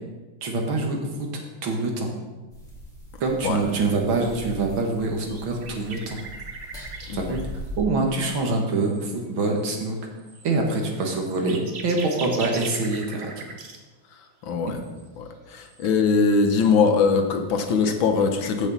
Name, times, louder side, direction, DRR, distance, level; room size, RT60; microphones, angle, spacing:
voice 1, 0.4-1.3 1.6-2.1 3.2-6.2 7.1-7.4 7.8-10.0 10.4-13.3, right 3 dB, 80° right, 1 dB, 2.3 m, -25 dB
sound 1, 2.5-7.8, left 1 dB, ahead, 2.6 m, -41 dB
sound 2, 4.2-4.4 4.8-7.5 8.1-8.4 8.7-9.1 9.5-9.9 10.2-13.8 14.8-15.1 15.5-15.9 16.1-16.2 16.4-17.0, right 3 dB, 40° right, 1.0 m, -40 dB
voice 2, 14.4-14.8 15.2-18.7, left 5 dB, 75° left, 5 dB, 1.8 m, -21 dB
14.5 x 6.2 x 4.1 m, 1.2 s
omnidirectional pair, 2.2 m